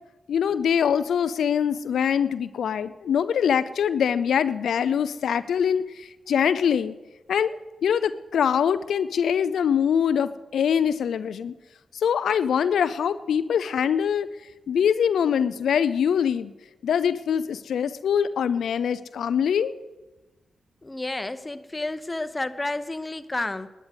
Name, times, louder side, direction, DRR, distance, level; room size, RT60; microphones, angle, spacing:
voice 1, 0.3-6.9 7.3-7.6 7.8-11.5 11.9-14.3 14.7-16.5 16.8-19.7, left 8 dB, 80° left, 13 dB, 0.4 m, -23 dB
voice 2, 20.8-23.7, left 2 dB, 25° left, 12 dB, 0.9 m, -30 dB
11.5 x 9.5 x 8.1 m, 1.1 s
supercardioid pair, 40°, 0 cm